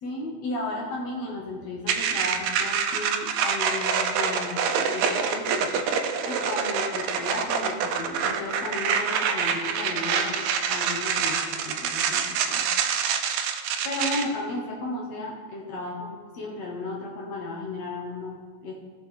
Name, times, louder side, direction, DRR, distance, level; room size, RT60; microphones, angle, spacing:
voice 1, 0.0-5.7 6.2-12.7 13.1-13.5 13.8-18.7, left 2 dB, 60° left, -3 dB, 2.5 m, -34 dB
sound 1, 1.9-14.2, right 6 dB, 75° right, 1.8 m, -26 dB
18.0 x 6.2 x 3.3 m, 1.5 s
omnidirectional pair, 3.7 m